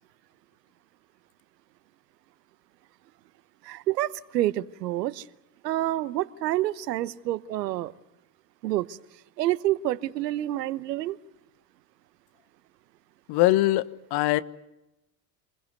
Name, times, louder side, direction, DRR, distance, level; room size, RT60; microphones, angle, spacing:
voice 1, 3.6-5.3 5.6-7.9 8.6-9.0 9.4-11.2, right 14 dB, 75° right, 17 dB, 1.0 m, -28 dB
voice 2, 13.3-14.4, left 17 dB, 50° left, 15 dB, 1.3 m, -22 dB
27.5 x 21.0 x 8.2 m, 0.91 s
hypercardioid pair, 75°, 49 cm